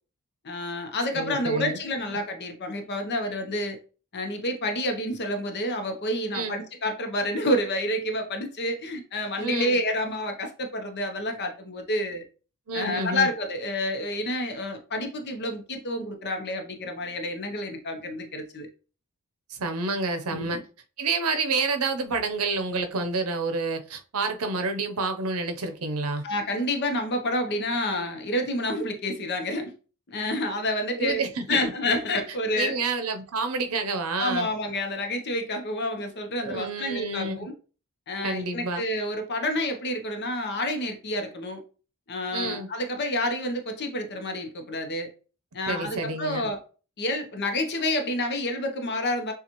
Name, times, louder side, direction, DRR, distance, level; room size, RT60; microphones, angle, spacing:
voice 1, 0.4-3.8 4.1-12.2 12.7-18.7 20.3-20.6 26.2-29.7 30.1-32.8 34.2-37.5 38.1-41.6 42.1-45.1 45.5-46.6 47.0-49.3, left 1 dB, 50° left, 0.8 m, -29 dB
voice 2, 1.1-1.8 2.1-2.2 6.3-6.6 9.4-9.8 12.7-13.3 19.5-20.6 21.0-26.2 31.0-31.6 32.5-34.5 36.4-37.5 38.2-38.9 42.3-42.7 45.7-46.5, right 3 dB, 75° right, 0.7 m, -29 dB
6.8 x 2.4 x 3.0 m
head